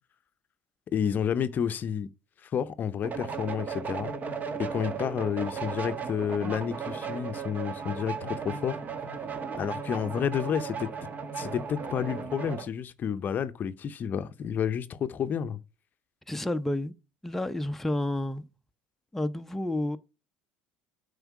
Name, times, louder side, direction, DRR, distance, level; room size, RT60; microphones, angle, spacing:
voice 1, 0.9-2.1 2.4-4.1 4.6-8.7 9.5-10.9 11.4-15.6, left 8 dB, 40° left, 0.6 m, -30 dB
sound 1, 3.0-12.7, right 5 dB, 35° right, 1.1 m, -36 dB
voice 2, 16.3-16.9 17.2-18.5 19.1-20.0, left 1 dB, 5° left, 0.6 m, -30 dB
7.9 x 5.1 x 4.7 m
hypercardioid pair, 75°, 5 cm